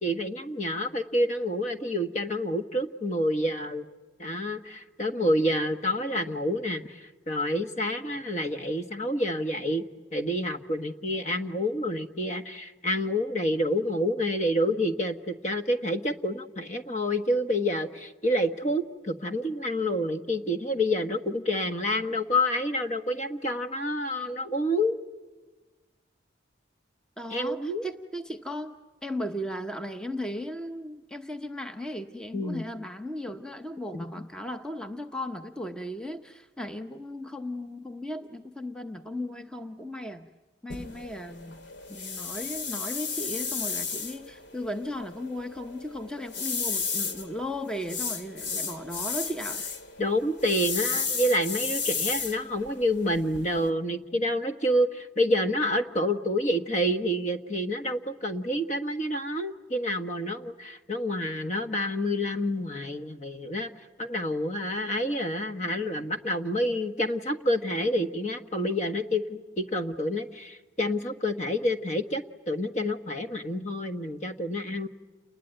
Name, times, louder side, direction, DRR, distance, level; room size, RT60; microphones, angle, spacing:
voice 1, 0.0-3.9 4.2-9.8 10.1-25.0 27.3-27.9 32.3-32.6 33.9-34.1 50.0-63.7 64.0-74.9, left 1 dB, 40° left, 7 dB, 1.4 m, -28 dB
voice 2, 27.2-28.8 29.0-40.3 40.6-41.6 41.9-49.6, left 1 dB, 5° left, 6 dB, 0.8 m, -36 dB
sound 1, 40.7-53.7, left 5 dB, 75° left, 2.2 m, -34 dB
29.5 x 20.5 x 9.2 m, 1.2 s
head